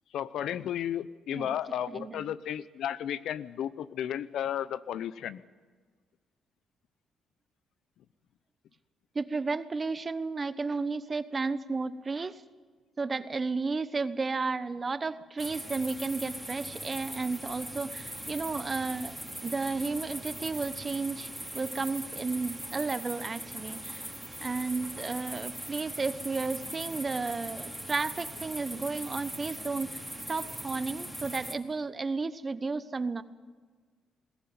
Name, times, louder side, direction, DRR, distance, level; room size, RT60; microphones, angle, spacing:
voice 1, 0.1-5.4, left 10 dB, 75° left, 16 dB, 0.7 m, -33 dB
voice 2, 1.9-2.2 9.1-12.4 13.0-19.2 19.4-24.0 24.4-30.0 30.3-33.2, right 4 dB, 30° right, 13 dB, 1.0 m, -33 dB
sound 1, 15.4-31.5, right 1 dB, ahead, 2.8 m, -40 dB
20.5 x 17.0 x 9.5 m, 1.5 s
cardioid pair, 90°, 0 cm